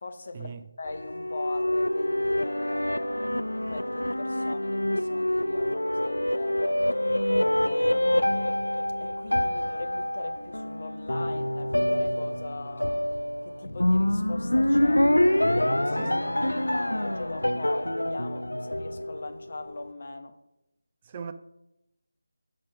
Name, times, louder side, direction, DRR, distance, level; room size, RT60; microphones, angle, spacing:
voice 1, 0.0-6.9 7.3-8.5 9.0-13.0 13.4-15.1 15.5-20.4, left 3 dB, 50° left, 0.9 m, -40 dB
sound 1, 0.9-19.4, left 1 dB, 90° left, 0.4 m, -26 dB
voice 2, 16.0-16.3 21.1-21.3, right 6 dB, 25° right, 0.4 m, -39 dB
7.5 x 4.4 x 5.8 m
figure-of-eight pair, 160°, 0 cm